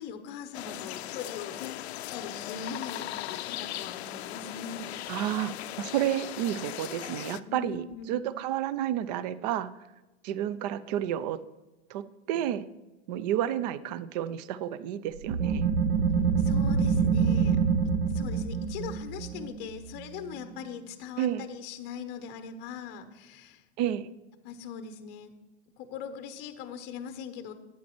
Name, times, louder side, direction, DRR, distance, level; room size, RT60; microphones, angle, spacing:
voice 1, 0.0-1.6 2.1-4.9 7.4-8.3 16.4-17.6 18.1-23.6 24.4-25.3 25.8-27.5, left 6 dB, 30° left, 9 dB, 0.7 m, -40 dB
sound 1, 0.5-7.4, left 13 dB, 70° left, 0.5 m, -38 dB
voice 2, 5.1-5.5 5.8-9.7 10.2-11.4 11.9-12.6 13.1-15.7 21.2-21.4 23.8-24.1, right 11 dB, 40° right, 16 dB, 0.4 m, -31 dB
sound 2, 15.2-20.5, right 6 dB, 60° right, 0.8 m, -26 dB
11.0 x 8.7 x 3.0 m, 1.1 s
hypercardioid pair, 130°, 34 cm